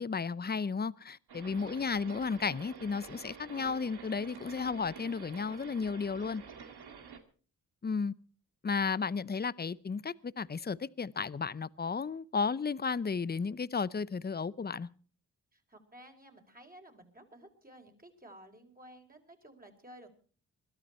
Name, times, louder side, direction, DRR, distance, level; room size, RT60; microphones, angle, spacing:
voice 1, 0.0-6.4 7.8-8.1 8.6-14.9, left 5 dB, 25° left, 0.7 m, -33 dB
sound 1, 1.3-7.2, right 6 dB, 75° right, 2.1 m, -49 dB
voice 2, 15.5-20.1, right 1 dB, 20° right, 4.6 m, -54 dB
21.5 x 13.0 x 4.4 m
supercardioid pair, 50°, 38 cm